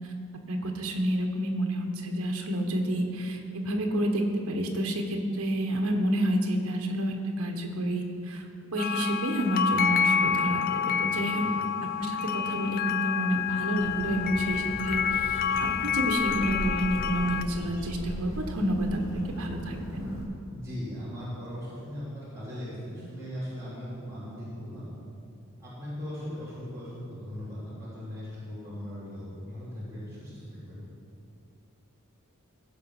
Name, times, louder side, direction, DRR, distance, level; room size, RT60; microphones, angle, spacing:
voice 1, 0.5-8.4 8.7-11.4 12.0-19.0 19.4-20.2, right 1 dB, 85° right, 3 dB, 1.3 m, -29 dB
sound 1, 8.8-17.4, left 7 dB, 40° left, 0.3 m, -28 dB
Bird, 13.7-20.2, equal, 70° left, 1.8 m, -39 dB
voice 2, 20.5-24.9 25.6-30.8, equal, 15° right, -11 dB, 3.1 m, -39 dB
15.5 x 5.2 x 6.1 m, 2.5 s
head